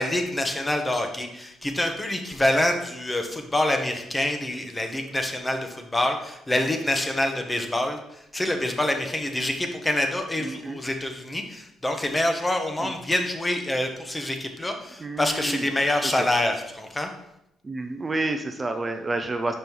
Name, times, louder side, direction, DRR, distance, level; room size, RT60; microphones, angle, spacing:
voice 1, 0.0-17.1, left 1 dB, 15° left, 5 dB, 1.0 m, -26 dB
voice 2, 10.4-10.8 12.8-12.9 15.0-15.6 16.2-16.3 17.6-19.5, right 2 dB, 25° right, 5 dB, 0.6 m, -29 dB
5.5 x 5.1 x 4.6 m, 0.81 s
cardioid pair, 90°, 0 cm